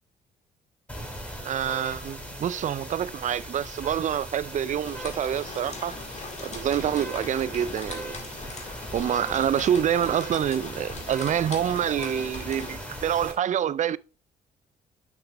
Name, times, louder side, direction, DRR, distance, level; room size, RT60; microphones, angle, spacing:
sound 1, 0.9-13.3, equal, 5° left, 3.9 m, -39 dB
voice 1, 1.4-6.0 6.4-8.2 8.9-14.0, right 9 dB, 45° right, 0.4 m, -27 dB
sound 2, 4.8-12.8, left 3 dB, 40° left, 2.1 m, -41 dB
7.1 x 5.8 x 3.4 m
supercardioid pair, 65°, 17 cm